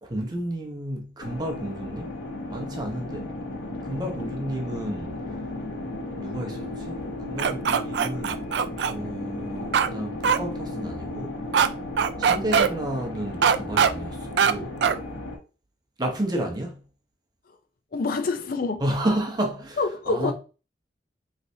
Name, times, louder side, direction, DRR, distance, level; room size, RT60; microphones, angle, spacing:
voice 1, 0.0-2.2 2.5-3.3 3.8-5.4 6.2-8.4 8.9-11.4 12.2-14.8 16.0-16.8 18.8-19.8 20.1-20.3, right 1 dB, 25° right, 0.9 m, -31 dB
sound 1, 1.2-15.4, left 2 dB, 75° left, 1.4 m, -35 dB
sound 2, 7.4-8.9 9.7-9.9 10.2-10.4 11.5-11.7 12.0-12.7 13.4-13.9 14.4-14.5 14.8-15.0, right 7 dB, 70° right, 0.3 m, -20 dB
voice 2, 17.9-18.8 19.8-20.3, left 3 dB, 55° left, 0.5 m, -26 dB
4.0 x 3.3 x 2.7 m
head